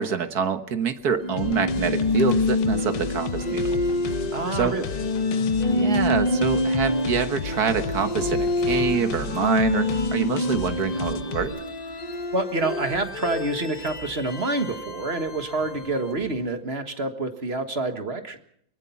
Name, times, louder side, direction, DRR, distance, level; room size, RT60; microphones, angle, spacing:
voice 1, 0.0-3.8 4.5-4.8 5.7-11.5, right 6 dB, 60° right, 9 dB, 1.8 m, -26 dB
sound 1, 1.2-16.3, left 2 dB, 25° left, 1.6 m, -27 dB
sound 2, 1.4-11.5, left 7 dB, 80° left, 1.6 m, -34 dB
voice 2, 4.3-4.9 12.3-18.4, right 2 dB, 35° right, 7 dB, 1.7 m, -27 dB
24.0 x 20.0 x 5.8 m, 0.70 s
omnidirectional pair, 1.9 m